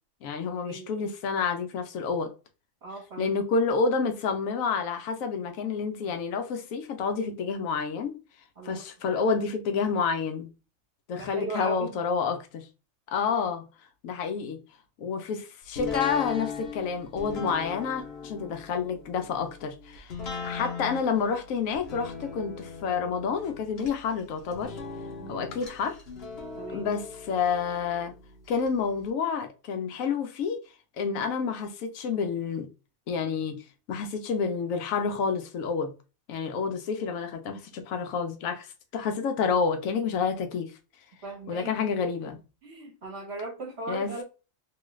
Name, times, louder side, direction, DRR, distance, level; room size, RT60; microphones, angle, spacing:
voice 1, 0.2-2.3 3.2-8.2 8.6-10.5 11.1-12.7 13.1-13.7 14.0-14.6 15.0-20.1 20.4-24.8 25.3-26.0 26.7-28.1 28.5-30.6 31.0-32.7 33.1-33.6 33.9-35.9 36.3-40.7 41.5-42.4 43.9-44.1, left 5 dB, 85° left, 1.0 m, -29 dB
voice 2, 2.8-3.4 8.6-8.8 11.1-12.0 25.2-25.5 26.6-26.9 41.2-41.7 42.6-44.2, right 3 dB, 55° right, 1.3 m, -38 dB
sound 1, 15.7-28.7 29.1-29.2, left 5 dB, 55° left, 0.9 m, -39 dB
3.1 x 2.4 x 3.0 m
omnidirectional pair, 1.4 m